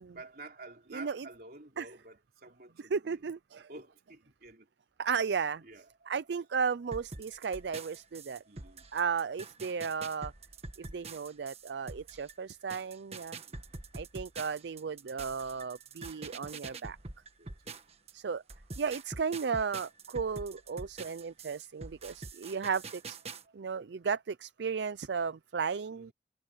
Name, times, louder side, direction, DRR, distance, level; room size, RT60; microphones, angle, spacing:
voice 1, 0.1-3.2 3.7-4.7 5.6-6.1 7.6-8.0 8.4-8.9 13.5-13.6 17.4-17.8 23.4-23.6 25.9-26.1, right 3 dB, 55° right, 3.7 m, -51 dB
voice 2, 0.9-1.3 1.8-1.9 2.9-3.7 5.0-5.6 6.1-8.4 8.9-10.3 10.9-13.4 13.9-17.0 18.1-18.4 18.8-23.2 23.5-26.1, right 6 dB, 75° right, 0.5 m, -34 dB
sound 1, 6.9-18.1 18.5-23.4, right 3 dB, 35° right, 1.5 m, -45 dB
head